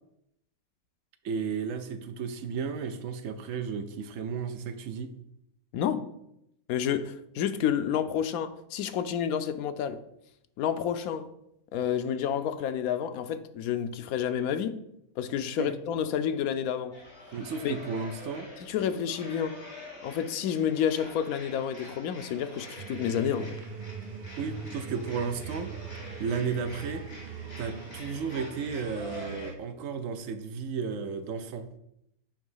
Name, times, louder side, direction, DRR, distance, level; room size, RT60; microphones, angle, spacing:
voice 1, 1.2-5.1 15.6-15.7 17.3-18.5 24.4-25.7 26.2-27.0 27.6-31.8, right 5 dB, 70° right, 1.0 m, -33 dB
voice 2, 5.7-6.1 6.7-10.0 10.6-11.3 11.7-14.8 15.2-16.9 17.6-17.7 18.6-19.6 20.0-23.6, left 8 dB, 85° left, 1.0 m, -29 dB
sound 1, 16.9-29.5, left 1 dB, 45° left, 1.9 m, -46 dB
sound 2, 22.8-29.6, right 6 dB, 50° right, 0.6 m, -41 dB
8.6 x 3.0 x 5.5 m
omnidirectional pair, 1.5 m